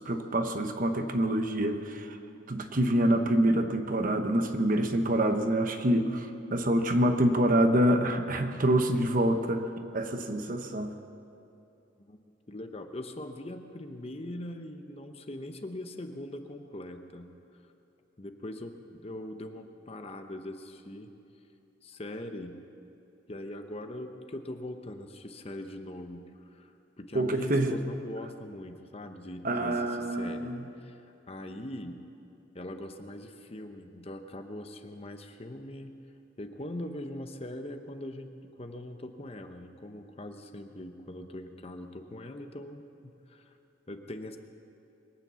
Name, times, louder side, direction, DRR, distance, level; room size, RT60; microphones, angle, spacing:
voice 1, 0.0-2.2 2.5-9.6 9.9-10.9 27.1-27.8 29.4-30.7, right 1 dB, 45° right, 6 dB, 1.0 m, -26 dB
voice 2, 12.5-17.3 18.2-21.1 21.8-22.6 23.3-26.2 26.5-32.0 32.5-35.9 36.4-43.5 43.9-44.4, left 1 dB, 30° left, 6 dB, 0.9 m, -41 dB
23.0 x 9.1 x 7.0 m, 2.8 s
head